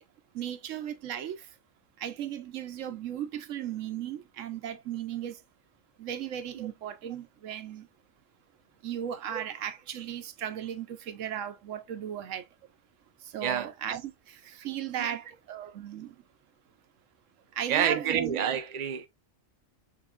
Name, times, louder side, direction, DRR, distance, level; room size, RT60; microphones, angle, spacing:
voice 1, 0.3-1.5 2.0-5.4 6.0-7.9 8.8-12.4 13.3-16.1 17.5-18.4, right 10 dB, 85° right, 1.0 m, -36 dB
voice 2, 17.7-19.1, right 8 dB, 40° right, 0.7 m, -28 dB
6.0 x 3.7 x 2.2 m
omnidirectional pair, 1.3 m